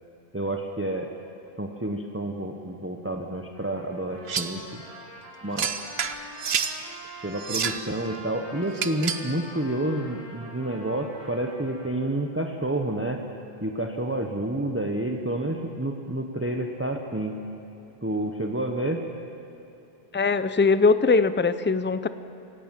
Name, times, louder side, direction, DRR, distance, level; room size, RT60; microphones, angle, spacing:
voice 1, 0.3-1.1 1.6-4.8 5.4-5.7 7.2-13.2 13.6-17.4 18.0-19.0, right 1 dB, 15° right, 3 dB, 1.1 m, -29 dB
Trumpet, 3.5-11.9, equal, 40° right, 6.2 m, -44 dB
sound 1, 4.3-4.6 5.6-6.8 7.4-7.9 8.7-9.3, right 6 dB, 80° right, 1.2 m, -29 dB
voice 2, 20.1-22.1, left 4 dB, 15° left, 12 dB, 0.5 m, -21 dB
27.0 x 17.0 x 7.5 m, 2.8 s
omnidirectional pair, 1.0 m